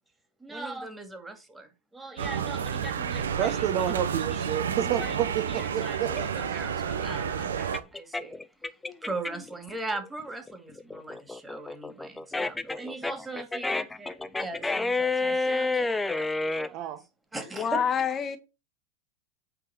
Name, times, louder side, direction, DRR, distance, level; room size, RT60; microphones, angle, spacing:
voice 1, 0.4-1.7 1.9-3.5 4.8-5.1 5.5-8.4 9.0-16.9 17.3-17.9, right 2 dB, 10° right, 2.3 m, -39 dB
sound 1, 2.2-7.8, right 7 dB, 80° right, 0.8 m, -30 dB
voice 2, 3.4-6.4 16.7-17.0, right 10 dB, 50° right, 1.0 m, -29 dB
sound 2, 6.1-9.5 9.9-16.7, left 3 dB, 10° left, 0.7 m, -30 dB
voice 3, 9.0-9.4 17.5-18.4, left 7 dB, 30° left, 1.1 m, -28 dB
8.9 x 3.8 x 5.9 m
hypercardioid pair, 95°, 0 cm